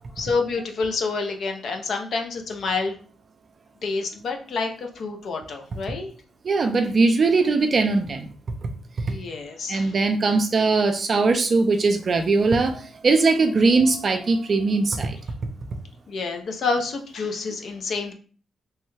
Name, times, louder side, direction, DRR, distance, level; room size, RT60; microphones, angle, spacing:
voice 1, 0.1-3.0 3.8-6.1 9.1-10.0 16.1-18.1, left 4 dB, 70° left, 4 dB, 0.6 m, -28 dB
voice 2, 6.4-8.3 9.7-15.2, right 3 dB, 55° right, 6 dB, 0.4 m, -20 dB
3.0 x 2.2 x 3.2 m, 0.41 s
cardioid pair, 60°, 0 cm